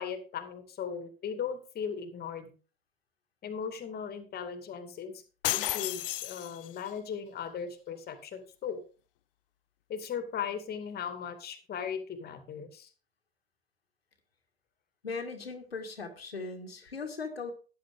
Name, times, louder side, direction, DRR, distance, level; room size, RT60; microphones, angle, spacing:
voice 1, 0.0-2.5 3.4-5.2 5.5-8.8 9.9-12.9, left 7 dB, 35° left, 9 dB, 2.3 m, -38 dB
sound 1, 5.4-6.9, left 16 dB, 65° left, 0.5 m, -32 dB
voice 2, 15.0-17.5, left 4 dB, 85° left, 5 dB, 1.9 m, -38 dB
12.5 x 10.0 x 3.7 m, 0.37 s
figure-of-eight pair, 80°, 29 cm